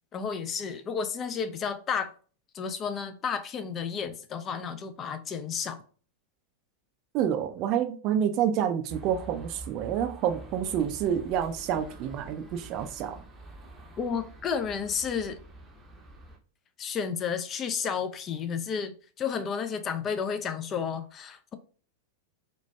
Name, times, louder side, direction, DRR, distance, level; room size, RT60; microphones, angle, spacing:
voice 1, 0.1-2.1 2.5-5.8 14.0-15.4 16.8-21.5, left 6 dB, 25° left, 0.4 m, -32 dB
voice 2, 7.1-13.2, right 9 dB, 40° right, 0.4 m, -28 dB
sound 1, 8.9-16.4, right 2 dB, 10° right, 0.7 m, -46 dB
4.0 x 2.2 x 2.2 m
figure-of-eight pair, 90°, 0 cm